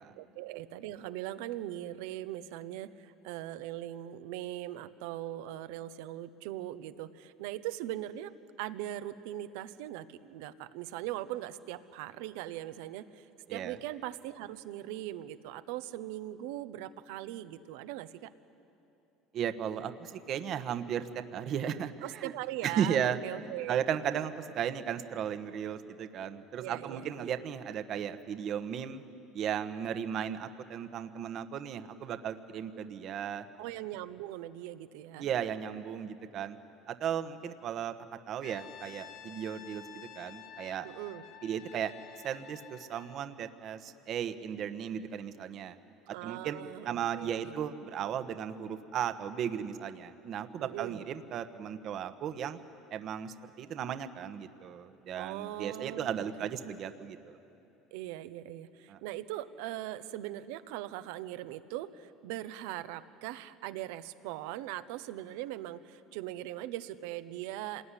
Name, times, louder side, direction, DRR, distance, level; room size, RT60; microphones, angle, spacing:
voice 1, 0.2-13.2 13.5-18.3 22.0-23.8 26.6-27.3 33.6-35.3 40.8-41.2 46.1-47.7 50.6-51.0 55.2-56.3 57.9-67.8, right 14 dB, 80° right, 13 dB, 1.0 m, -40 dB
voice 2, 19.3-22.3 22.6-23.2 23.7-29.0 29.3-33.4 35.2-36.6 36.9-37.9 38.3-40.9 41.4-41.9 42.2-45.8 46.2-46.6 46.8-52.6 52.9-57.4 58.9-59.0, right 8 dB, 50° right, 9 dB, 1.2 m, -35 dB
Brass instrument, 38.4-43.3, left 10 dB, 55° left, 1.0 m, -51 dB
26.0 x 19.5 x 10.0 m, 2.8 s
supercardioid pair, 115°, 0 cm